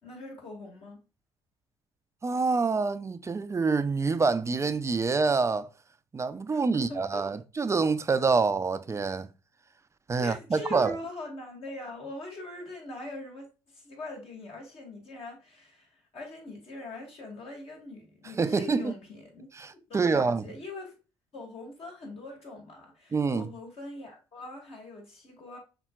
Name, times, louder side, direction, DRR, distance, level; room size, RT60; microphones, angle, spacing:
voice 1, 0.0-1.0 6.5-7.3 10.2-21.0 21.3-25.6, left 2 dB, 50° left, 2.3 m, -42 dB
voice 2, 2.2-5.7 6.1-9.3 10.1-11.0 18.4-18.9 19.6-20.4 23.1-23.5, right 4 dB, 25° right, 0.5 m, -26 dB
5.6 x 3.6 x 2.3 m
hypercardioid pair, 50°, 12 cm